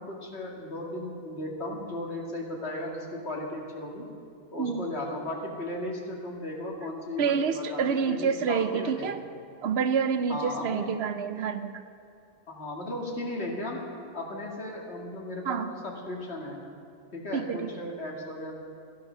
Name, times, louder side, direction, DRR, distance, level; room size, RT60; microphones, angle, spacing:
voice 1, 0.0-4.1 4.5-9.2 10.3-10.9 12.5-13.8 14.1-16.6 17.1-18.5, left 1 dB, 80° left, -1 dB, 2.3 m, -36 dB
voice 2, 7.2-9.2 9.6-11.8 15.4-15.7 17.3-17.7, right 6 dB, 75° right, 11 dB, 0.9 m, -28 dB
14.5 x 11.0 x 6.1 m, 2.4 s
omnidirectional pair, 1.1 m